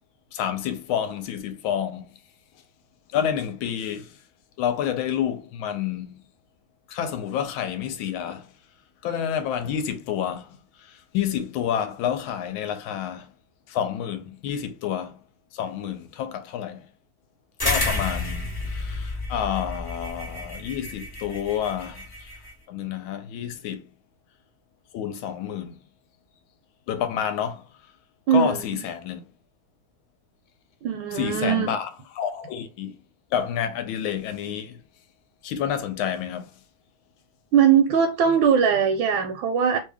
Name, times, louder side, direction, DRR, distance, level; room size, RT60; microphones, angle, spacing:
voice 1, 0.3-2.1 3.1-4.2 4.6-6.2 6.9-8.5 9.0-13.3 13.7-15.2 15.5-16.9 17.6-22.3 22.7-23.9 24.9-25.8 26.9-27.6 28.3-29.2 31.1-31.9 32.2-33.0 33.3-34.8 35.4-36.5, left 9 dB, 80° left, 1.4 m, -29 dB
sound 1, 17.6-22.5, left 2 dB, 25° left, 0.4 m, -30 dB
voice 2, 28.3-28.8 30.8-31.7 37.5-39.8, right 7 dB, 80° right, 1.3 m, -20 dB
3.0 x 2.7 x 3.4 m
omnidirectional pair, 2.2 m